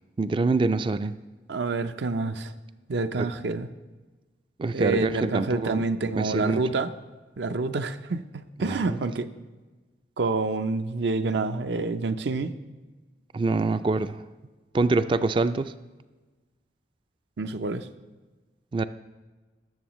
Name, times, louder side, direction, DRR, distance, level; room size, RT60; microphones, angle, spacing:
voice 1, 0.2-1.2 3.2-3.3 4.6-5.8 6.2-6.6 8.6-9.0 13.3-14.2 14.7-15.7 18.7-18.8, right 3 dB, 30° right, 13 dB, 0.3 m, -25 dB
voice 2, 1.5-2.5 2.9-3.7 4.7-6.9 7.4-9.3 10.2-12.5 17.4-17.9, right 3 dB, 75° right, 11 dB, 0.6 m, -27 dB
19.5 x 7.0 x 3.1 m, 1.3 s
head